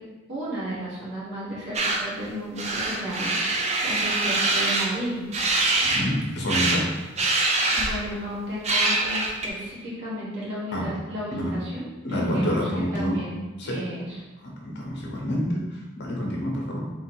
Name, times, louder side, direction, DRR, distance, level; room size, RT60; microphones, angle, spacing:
voice 1, 0.3-5.3 7.7-13.4 13.6-14.2, equal, 60° right, -7 dB, 1.5 m, -33 dB
sound 1, 1.7-2.0 2.6-4.9 5.3-6.0 6.5-6.8 7.2-8.1 8.6-9.5, right 2 dB, 30° right, 0.6 m, -24 dB
voice 2, 5.8-6.8 10.7-10.9 11.4-11.6 12.0-13.2 13.6-13.8 14.4-16.8, equal, 55° left, -2 dB, 1.0 m, -28 dB
3.7 x 2.9 x 4.4 m, 1.1 s
head